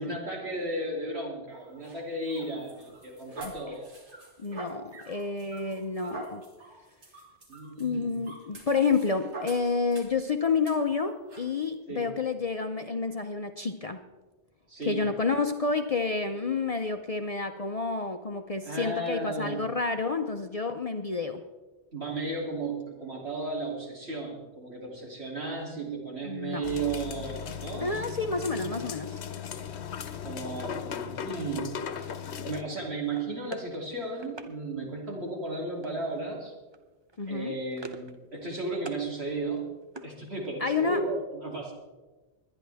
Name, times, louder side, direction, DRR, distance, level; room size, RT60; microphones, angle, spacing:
voice 1, 0.0-3.9 7.5-8.2 11.9-12.1 14.7-15.1 18.6-19.6 21.9-27.9 30.2-32.1 32.4-36.5 37.3-39.7 40.0-41.7, right 2 dB, 65° right, -2 dB, 3.2 m, -34 dB
sound 1, 1.5-10.2 10.6-10.8 11.3-11.5, right 2 dB, 85° right, 2.5 m, -45 dB
voice 2, 4.4-6.4 7.8-14.0 14.9-21.4 26.2-26.7 27.8-29.2 37.2-37.5 40.6-41.0, left 4 dB, 40° left, 6 dB, 0.6 m, -29 dB
sound 2, 26.6-32.6, left 7 dB, 75° left, 1.1 m, -37 dB
sound 3, 33.1-34.5 35.8-36.2 36.5-36.8 37.1-38.2 38.4-39.1 39.5-40.7, right 2 dB, 25° right, 0.8 m, -45 dB
22.0 x 10.0 x 3.4 m, 1.2 s
omnidirectional pair, 1.1 m